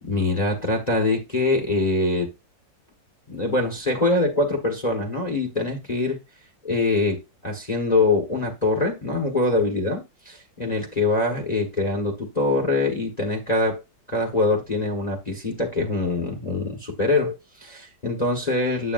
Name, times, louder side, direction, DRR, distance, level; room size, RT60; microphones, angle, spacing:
voice 1, 0.0-2.3 3.3-6.2 6.6-13.8 14.1-18.9, left 2 dB, 25° left, 1.3 m, -24 dB
8.6 x 7.0 x 2.5 m
omnidirectional pair, 2.0 m